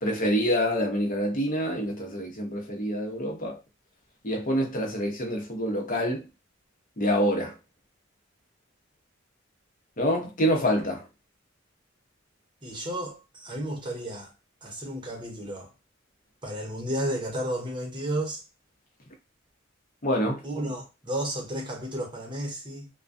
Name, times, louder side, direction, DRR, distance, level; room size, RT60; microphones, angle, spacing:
voice 1, 0.0-3.6 4.2-6.2 7.0-7.5 10.0-11.0 20.0-20.4, equal, 45° left, 0.8 m, -26 dB
voice 2, 12.6-14.3 14.6-15.7 16.4-18.4 20.4-22.9, right 1 dB, 25° right, 0.8 m, -32 dB
2.3 x 2.2 x 2.5 m
head